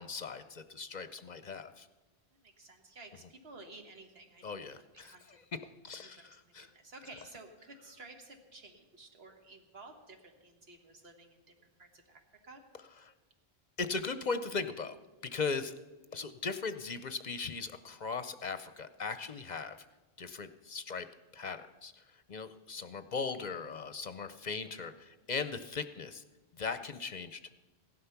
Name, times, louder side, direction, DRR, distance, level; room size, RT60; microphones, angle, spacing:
voice 1, 0.0-1.9 4.4-5.1 5.8-6.7 13.8-15.0 15.2-15.7 16.1-19.8 20.2-21.1 21.3-21.9 22.3-26.2 26.6-27.5, left 4 dB, 50° left, 11 dB, 0.7 m, -38 dB
voice 2, 2.3-4.4 4.9-5.4 6.0-12.6 22.3-22.5, right 2 dB, 80° right, 4 dB, 1.8 m, -53 dB
16.0 x 11.5 x 5.8 m, 1.2 s
omnidirectional pair, 1.0 m